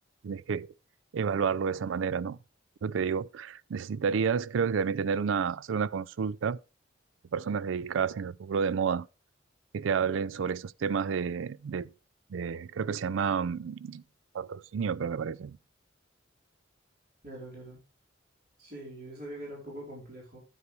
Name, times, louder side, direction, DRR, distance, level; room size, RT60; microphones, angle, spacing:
voice 1, 0.2-0.7 1.1-2.4 2.8-6.6 7.3-9.1 9.7-11.9 12.3-14.0 14.3-15.6, right 6 dB, 85° right, 0.4 m, -30 dB
voice 2, 17.2-17.8 18.6-20.4, right 1 dB, 50° right, 4.4 m, -43 dB
9.6 x 8.2 x 3.2 m
head